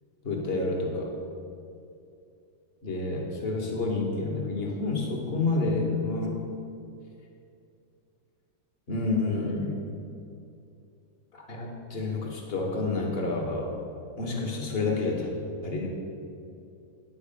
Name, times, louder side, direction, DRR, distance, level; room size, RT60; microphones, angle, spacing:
voice 1, 0.2-1.1 2.8-6.4 8.9-9.8 11.3-13.7 14.2-15.3 15.6-15.9, left 3 dB, 35° left, 0 dB, 1.2 m, -29 dB
9.9 x 4.7 x 6.7 m, 2.5 s
omnidirectional pair, 2.2 m